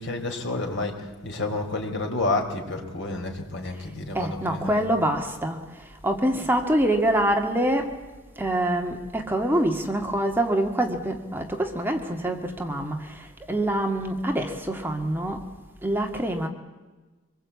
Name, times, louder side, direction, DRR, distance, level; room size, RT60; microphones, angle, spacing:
voice 1, 0.0-4.8, left 2 dB, 65° left, 4.2 m, -30 dB
voice 2, 4.1-8.0 8.4-15.4 15.8-16.5, right 1 dB, 10° right, 1.9 m, -25 dB
25.5 x 21.5 x 8.4 m
head